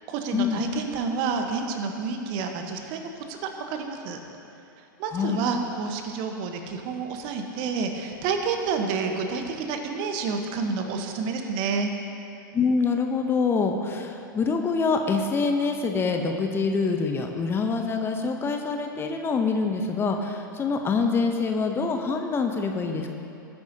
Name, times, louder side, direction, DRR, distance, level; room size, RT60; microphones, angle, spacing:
voice 1, 0.1-4.2 5.0-11.9, right 5 dB, 45° right, 5 dB, 1.2 m, -29 dB
voice 2, 5.1-5.4 12.5-23.1, left 4 dB, 20° left, 4 dB, 0.8 m, -25 dB
19.0 x 9.3 x 2.8 m, 2.8 s
figure-of-eight pair, 100°, 11 cm